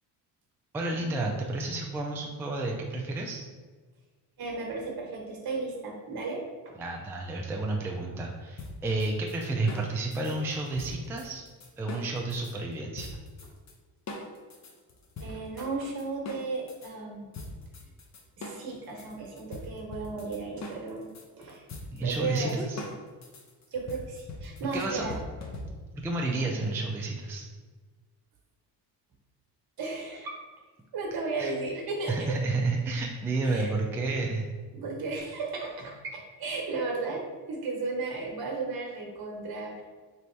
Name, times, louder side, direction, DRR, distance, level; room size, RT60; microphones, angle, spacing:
voice 1, 0.7-3.4 6.8-11.4 11.8-13.2 21.9-22.8 24.7-25.1 25.9-27.5 31.4-31.5 32.1-34.5, right 2 dB, 5° right, 0 dB, 0.3 m, -31 dB
voice 2, 4.4-6.7 15.2-17.3 18.4-21.1 21.4-21.7 22.0-22.5 23.7-25.2 29.8-30.4 30.9-32.3 33.4-33.8 34.7-39.8, right 3 dB, 55° right, -1 dB, 1.2 m, -34 dB
sound 1, 8.6-12.5 13.0-13.7 14.1-16.9 17.3-26.0, left 2 dB, 40° left, 0.7 m, -42 dB
3.2 x 2.7 x 4.5 m, 1.4 s
cardioid pair, 95°, 43 cm